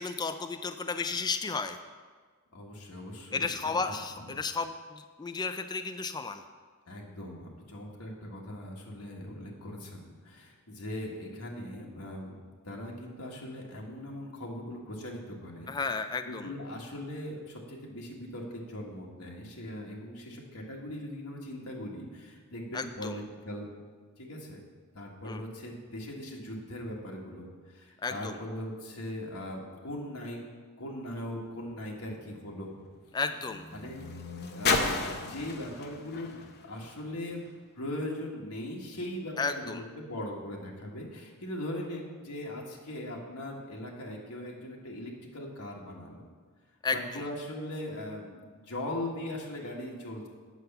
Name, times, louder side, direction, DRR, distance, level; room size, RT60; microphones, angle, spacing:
voice 1, 0.0-1.8 3.3-6.4 15.7-16.5 22.7-23.1 25.3-25.4 28.0-28.3 33.1-33.6 39.4-39.8 46.8-47.0, left 4 dB, 20° left, 8 dB, 0.3 m, -33 dB
voice 2, 2.5-3.5 3.9-4.3 6.8-15.9 16.3-23.6 24.2-24.6 24.9-30.4 30.8-32.7 33.7-34.1 34.5-37.4 37.7-46.3 46.9-50.3, left 1 dB, 85° left, -1 dB, 1.6 m, -40 dB
sound 1, 31.3-37.6 38.4-38.5, left 4 dB, 50° left, 0.8 m, -35 dB
8.1 x 5.8 x 6.7 m, 1.5 s
head